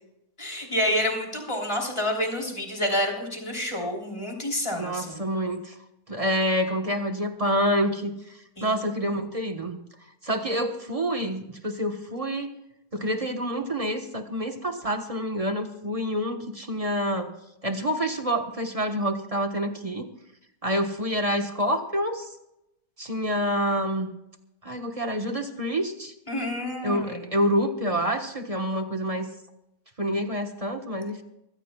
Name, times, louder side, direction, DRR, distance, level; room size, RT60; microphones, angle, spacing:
voice 1, 0.4-5.2 8.6-8.7 26.3-27.3, left 1 dB, 15° left, 0 dB, 3.2 m, -28 dB
voice 2, 4.8-5.7 6.1-8.1 8.6-9.8 10.2-12.5 12.9-17.3 17.6-20.1 20.6-22.3 23.0-24.1 24.6-26.1 26.8-29.3 30.0-31.2, equal, 25° right, 5 dB, 1.0 m, -27 dB
23.0 x 15.5 x 2.3 m, 0.87 s
omnidirectional pair, 1.8 m